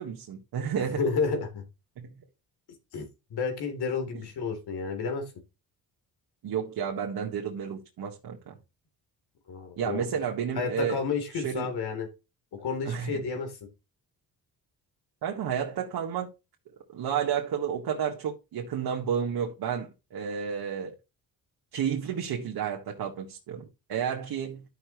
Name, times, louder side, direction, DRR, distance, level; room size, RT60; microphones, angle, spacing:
voice 1, 0.0-1.0 2.0-2.1 6.4-8.6 9.8-11.0 11.3-11.7 12.8-13.2 15.2-16.3 16.9-20.9 21.7-24.6, right 8 dB, 75° right, 1.7 m, -31 dB
voice 2, 1.0-1.6 2.9-3.1 3.3-5.2 9.5-10.0 10.5-12.1 12.5-13.5, left 5 dB, 80° left, 3.5 m, -31 dB
11.5 x 6.2 x 3.1 m
cardioid pair, 95°, 38 cm